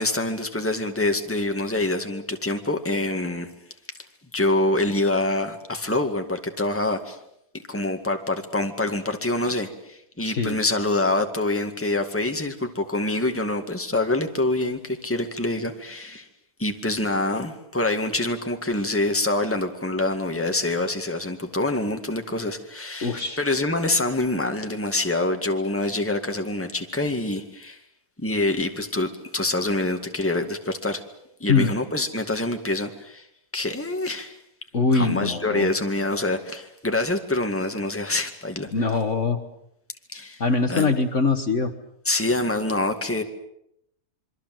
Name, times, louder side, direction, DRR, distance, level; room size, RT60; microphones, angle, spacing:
voice 1, 0.0-3.5 4.3-7.2 7.7-16.3 16.6-27.8 28.2-31.0 31.4-33.2 33.5-34.4 34.9-38.7 40.1-40.4 40.7-40.9 42.1-43.2, left 2 dB, 10° left, 5 dB, 2.1 m, -26 dB
voice 2, 10.2-10.6 23.0-23.4 31.5-31.7 34.7-35.7 38.7-39.4 40.4-41.7, left 4 dB, 50° left, 8 dB, 1.8 m, -22 dB
27.0 x 24.0 x 7.8 m, 0.78 s
omnidirectional pair, 1.7 m